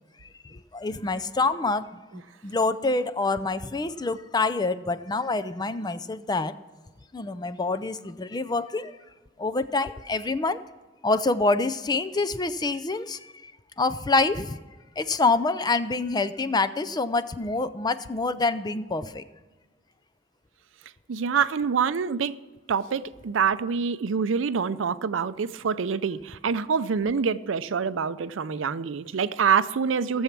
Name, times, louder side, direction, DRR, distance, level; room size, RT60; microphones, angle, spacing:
voice 1, 0.2-6.5 7.1-9.0 9.4-10.6 11.0-13.5 13.8-14.6 15.0-19.2, left 3 dB, 20° left, 0.5 m, -26 dB
voice 2, 21.1-22.4 22.7-30.2, right 6 dB, 85° right, 0.5 m, -26 dB
17.0 x 7.2 x 5.9 m
head